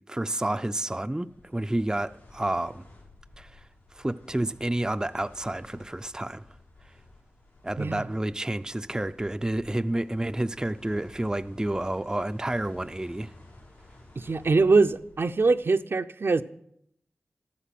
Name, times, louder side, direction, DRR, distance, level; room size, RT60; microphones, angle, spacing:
voice 1, 0.0-2.8 3.4-3.7 3.9-6.4 7.6-13.3, right 1 dB, 15° right, 0.5 m, -30 dB
sound 1, 1.1-15.5, left 2 dB, 90° left, 7.2 m, -53 dB
voice 2, 14.2-16.4, right 3 dB, 60° right, 0.6 m, -23 dB
14.0 x 12.5 x 5.9 m
cardioid pair, 45°, 4 cm